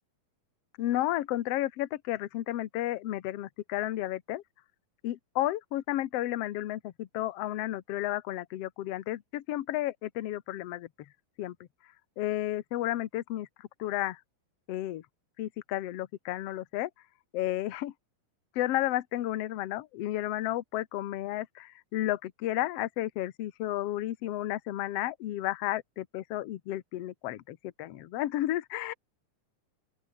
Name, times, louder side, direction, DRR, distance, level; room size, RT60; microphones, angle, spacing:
voice 1, 0.8-4.4 5.0-10.9 11.4-11.5 12.2-14.2 14.7-15.0 15.4-16.9 17.3-17.9 18.5-28.9, left 14 dB, 65° left, 1.5 m, -32 dB
open air
omnidirectional pair, 4.1 m